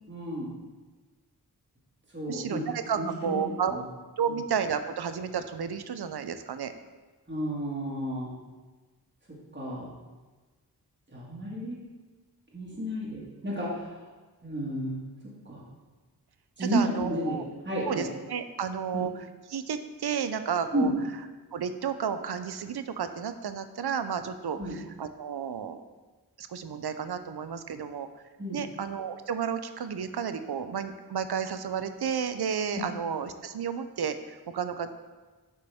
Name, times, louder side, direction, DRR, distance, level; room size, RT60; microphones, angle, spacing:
voice 1, 0.1-0.5 2.1-2.6 3.0-3.8 4.3-4.4 7.3-8.3 9.5-9.9 11.1-11.8 12.5-13.9 14.4-15.6 16.6-17.4 17.7-18.1 18.9-19.1 20.7-20.9 24.6-24.8 28.4-28.6, equal, 30° right, -6 dB, 1.9 m, -32 dB
voice 2, 2.3-3.8 4.2-6.7 16.6-17.4 17.9-20.9 21.5-25.8 26.4-28.1 28.5-34.9, right 7 dB, 80° right, 10 dB, 0.6 m, -32 dB
8.6 x 5.2 x 3.5 m, 1.3 s
wide cardioid pair, 45°, 38 cm